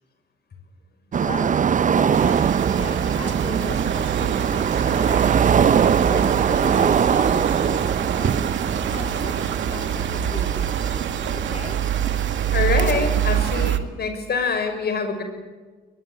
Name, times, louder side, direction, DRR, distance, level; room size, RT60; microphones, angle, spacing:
sound 1, 1.1-13.7, right 7 dB, 40° right, 0.7 m, -22 dB
voice 1, 1.2-1.6 2.0-5.3 6.1-11.8, left 3 dB, 30° left, 2 dB, 3.3 m, -37 dB
sound 2, 2.1-13.8, right 9 dB, 70° right, 2.0 m, -26 dB
voice 2, 12.5-15.2, left 4 dB, 55° left, 7 dB, 6.2 m, -25 dB
22.5 x 22.0 x 9.1 m, 1.4 s
cardioid pair, 90°, 20 cm